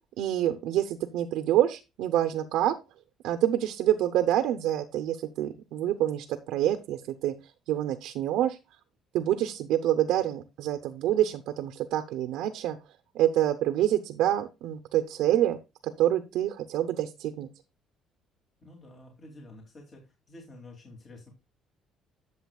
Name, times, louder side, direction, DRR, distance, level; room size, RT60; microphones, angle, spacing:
voice 1, 0.2-2.7 3.2-7.3 7.7-8.6 9.1-12.8 13.1-15.6 16.0-17.5, right 12 dB, 80° right, 8 dB, 0.8 m, -27 dB
voice 2, 18.6-20.0 20.3-21.3, left 2 dB, 30° left, 0 dB, 2.7 m, -49 dB
12.0 x 7.1 x 2.4 m, 0.26 s
cardioid pair, 125°, 0 cm